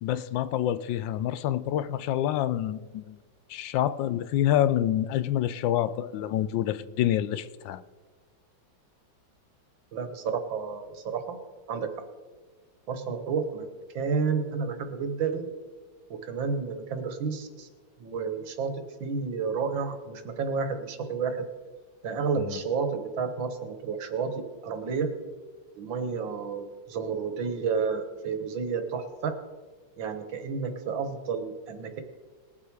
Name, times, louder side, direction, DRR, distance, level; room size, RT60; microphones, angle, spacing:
voice 1, 0.0-3.2 3.5-7.8 22.4-22.6, left 11 dB, 85° left, 14 dB, 1.3 m, -27 dB
voice 2, 9.9-11.4 11.7-12.0 12.9-13.7 13.9-15.5 16.1-17.7 18.0-21.5 22.0-25.1 25.8-29.4 30.0-32.0, right 5 dB, 90° right, 8 dB, 2.0 m, -31 dB
20.0 x 7.5 x 4.8 m, 1.4 s
omnidirectional pair, 2.0 m